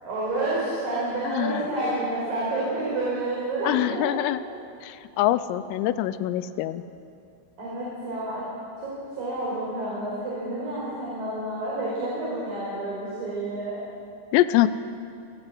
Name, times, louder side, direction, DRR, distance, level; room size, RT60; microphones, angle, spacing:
voice 1, 0.0-4.2 7.6-8.4 8.8-13.8, right 2 dB, 45° right, -6 dB, 6.4 m, -29 dB
voice 2, 3.7-4.4 4.8-4.9 5.2-6.8 14.3-14.7, left 14 dB, 90° left, 14 dB, 3.4 m, -23 dB
27.5 x 16.5 x 7.7 m, 2.5 s
omnidirectional pair, 5.9 m